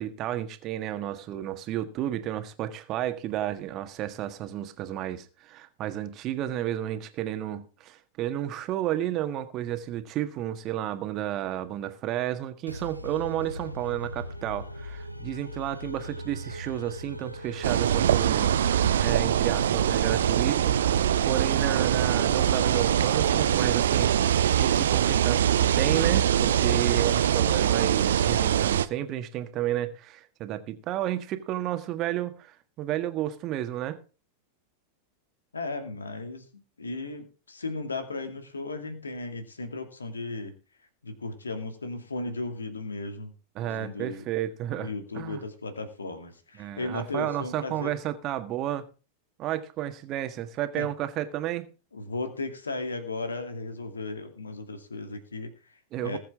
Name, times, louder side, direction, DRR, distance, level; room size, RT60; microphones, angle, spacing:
voice 1, 0.0-34.0 43.6-45.4 46.6-48.9 49.4-51.7 55.9-56.2, right 12 dB, 35° right, 1.7 m, -32 dB
sound 1, 12.7-24.1, equal, 90° right, 1.3 m, -40 dB
sound 2, 17.6-28.9, right 10 dB, 60° right, 0.7 m, -23 dB
voice 2, 35.5-40.5 41.0-43.3 43.6-44.2 44.8-47.9 50.8-50.9 51.9-56.2, left 3 dB, 75° left, 2.4 m, -36 dB
20.0 x 7.8 x 3.7 m
figure-of-eight pair, 90°, 0 cm